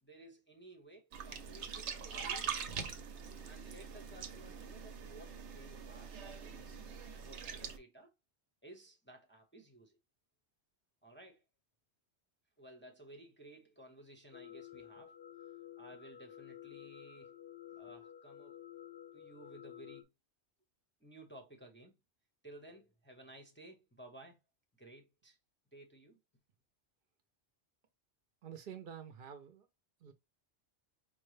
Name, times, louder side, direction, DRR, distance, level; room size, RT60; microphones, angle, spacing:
voice 1, 0.0-2.6 3.4-8.1 8.6-10.0 11.0-11.4 12.6-15.5 15.8-17.4 17.7-18.7 19.1-20.1 21.0-22.0 22.4-24.4 24.7-25.4 25.7-26.2, right 1 dB, 15° left, 0.6 m, -56 dB
sound 1, 1.1-7.8, right 7 dB, 80° right, 1.0 m, -43 dB
sound 2, 14.3-20.0, left 11 dB, 65° left, 0.7 m, -52 dB
voice 2, 28.4-29.7 30.0-30.1, right 8 dB, 55° right, 0.7 m, -48 dB
4.7 x 2.2 x 3.1 m
omnidirectional pair, 1.2 m